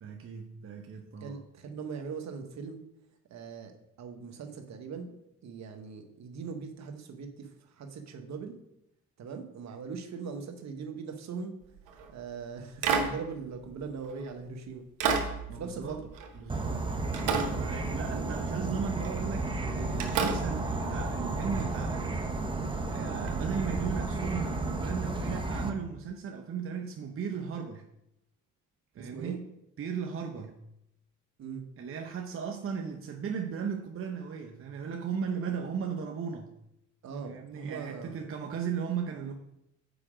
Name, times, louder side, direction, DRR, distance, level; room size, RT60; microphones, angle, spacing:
voice 1, 0.0-1.4 15.5-16.0 16.3-16.9 17.1-22.1 22.9-27.8 29.0-29.4 29.8-30.6 31.8-36.5 37.2-39.3, right 6 dB, 45° right, 3 dB, 0.8 m, -36 dB
voice 2, 1.2-2.8 3.3-3.7 4.0-5.2 5.4-8.6 9.2-11.6 12.1-14.9 15.5-16.1 17.7-18.3 28.9-29.4 31.4-31.7 37.0-38.2, right 5 dB, 65° right, 5 dB, 1.1 m, -40 dB
sound 1, 11.8-12.1 12.8-14.3 15.0-16.8 17.1-18.4 19.0-19.3 20.0-21.9 23.3-23.4, right 5 dB, 90° right, 1.0 m, -33 dB
Insect / Frog, 16.5-25.7, right 3 dB, 15° right, 0.9 m, -33 dB
6.9 x 4.9 x 4.9 m, 0.81 s
cardioid pair, 90°, 30 cm